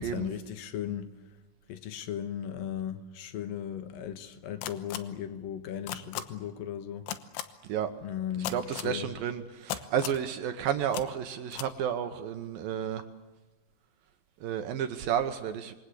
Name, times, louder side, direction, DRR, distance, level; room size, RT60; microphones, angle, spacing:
voice 1, 0.1-1.1 1.7-7.1 8.0-8.5 8.8-9.1, left 9 dB, 65° left, 2.5 m, -36 dB
sound 1, 4.6-5.0 5.9-6.2 7.1-7.4 8.4-8.9 9.7-10.2 10.9-11.0 11.5-11.7, left 12 dB, 85° left, 3.5 m, -35 dB
voice 2, 8.5-13.0 14.4-15.7, right 9 dB, 75° right, 2.2 m, -31 dB
27.0 x 22.5 x 8.3 m
omnidirectional pair, 5.3 m